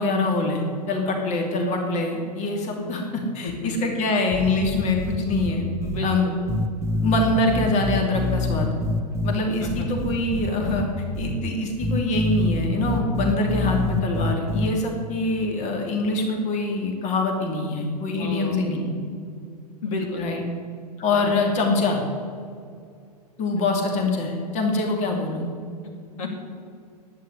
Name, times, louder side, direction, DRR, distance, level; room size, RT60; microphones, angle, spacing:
voice 1, 0.0-5.7 6.0-6.3 7.0-8.8 9.2-10.9 11.2-18.9 20.2-20.4 21.0-22.0 23.4-25.5, left 2 dB, 35° left, 2 dB, 2.8 m, -24 dB
sound 1, 4.3-5.5 5.8-6.0 6.5-9.3 9.6-10.8 11.1-11.3 11.8-14.7, left 1 dB, 15° right, 1.5 m, -25 dB
voice 2, 5.8-6.4 9.6-9.9 18.2-18.6 19.8-20.3 21.2-21.3 25.8-25.9 26.2-26.3, left 3 dB, 55° left, 1 dB, 2.7 m, -31 dB
11.0 x 9.7 x 9.7 m, 2.3 s
figure-of-eight pair, 95°, 21 cm